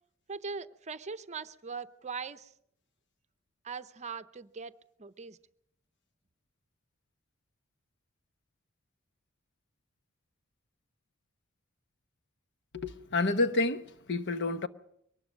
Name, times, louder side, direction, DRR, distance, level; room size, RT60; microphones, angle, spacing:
voice 1, 0.3-2.5 3.6-5.4, right 5 dB, 35° right, 0.7 m, -41 dB
voice 2, 12.7-14.7, left 2 dB, 55° left, 1.0 m, -29 dB
23.0 x 19.0 x 6.4 m
head